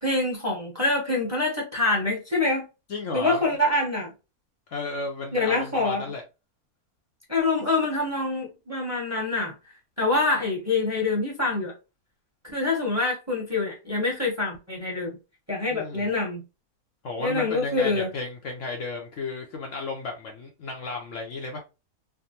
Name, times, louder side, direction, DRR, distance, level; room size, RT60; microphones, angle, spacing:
voice 1, 0.0-2.7 3.1-4.1 5.3-6.0 7.3-9.5 10.0-11.7 12.5-15.1 15.5-16.4 17.2-18.1, left 2 dB, 10° right, 1.0 m, -25 dB
voice 2, 2.9-3.4 4.7-6.2 15.7-16.1 17.0-21.6, left 3 dB, 65° left, 0.9 m, -33 dB
3.5 x 2.2 x 2.7 m
omnidirectional pair, 1.6 m